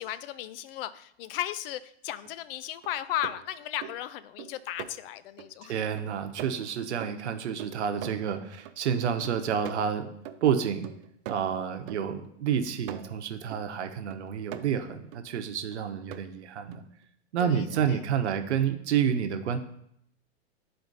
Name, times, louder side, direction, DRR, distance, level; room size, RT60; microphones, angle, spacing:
voice 1, 0.0-5.7 17.4-18.0, left 12 dB, 55° left, 15 dB, 0.6 m, -35 dB
sound 1, 2.2-2.3 2.8-5.5 6.0-8.8 9.0-13.7 14.1-15.2 15.7-16.2 16.7-16.8, right 11 dB, 55° right, 0.7 m, -43 dB
voice 2, 5.6-10.1 10.4-10.9 11.3-16.8 17.3-19.6, right 8 dB, 75° right, 7 dB, 1.0 m, -29 dB
11.5 x 4.3 x 2.7 m, 0.74 s
hypercardioid pair, 115°, 34 cm